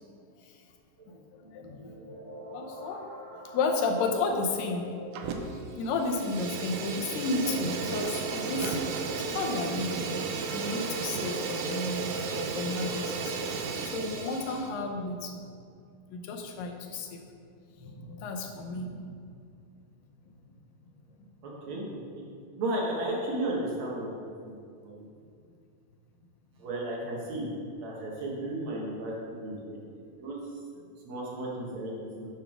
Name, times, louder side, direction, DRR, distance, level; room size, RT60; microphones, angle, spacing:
sound 1, 1.0-14.5, equal, 40° right, 2.1 m, -45 dB
voice 1, 1.5-2.0 2.5-3.1 3.4-4.8 5.7-8.8 9.1-10.2 10.5-15.4 16.1-17.2 17.8-19.0, left 3 dB, 80° left, 3 dB, 2.4 m, -32 dB
Fire, 5.1-5.7 5.9-14.7, right 5 dB, 80° right, 1.9 m, -34 dB
voice 2, 21.4-21.8 22.1-22.2 22.6-24.6 24.8-25.0 26.6-27.5 27.8-29.8 30.2-30.4 31.0-32.3, right 1 dB, 60° right, -4 dB, 2.4 m, -34 dB
9.2 x 3.5 x 6.0 m, 2.3 s
omnidirectional pair, 3.9 m